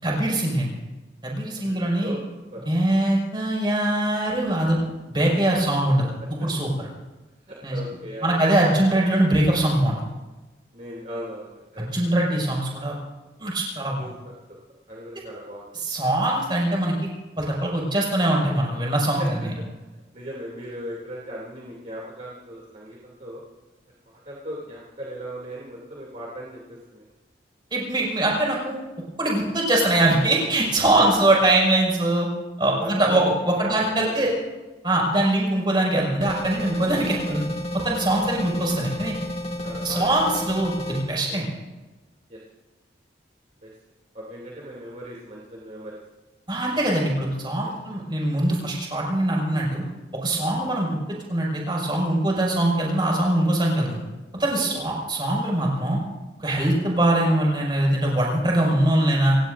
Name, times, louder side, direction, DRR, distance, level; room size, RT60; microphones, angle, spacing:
voice 1, 0.0-0.8 1.2-2.1 2.7-4.8 5.1-6.1 6.4-6.9 7.6-7.8 8.2-10.0 11.8-13.0 13.4-14.1 15.7-16.9 17.4-19.5 27.7-28.8 29.2-32.3 32.6-34.3 34.8-37.4 37.7-39.2 39.8-41.5 46.5-49.8 50.2-51.0 51.3-54.0 54.3-56.0 56.4-59.4, right 1 dB, 25° right, -3 dB, 5.8 m, -22 dB
voice 2, 1.6-2.2 2.5-2.6 7.4-8.6 10.7-11.9 14.0-14.6 14.9-15.7 19.2-19.3 19.6-19.7 20.1-23.4 24.1-27.1 30.8-31.1 32.7-34.3 37.9-38.3 39.6-40.4 41.3-41.5 42.3-42.4 43.6-43.7 44.1-46.0 47.6-47.7 54.5-54.8, equal, 40° right, -5 dB, 2.8 m, -38 dB
sound 1, 36.2-41.0, left 1 dB, 35° left, 2.5 m, -31 dB
29.0 x 17.0 x 2.6 m, 1.1 s
head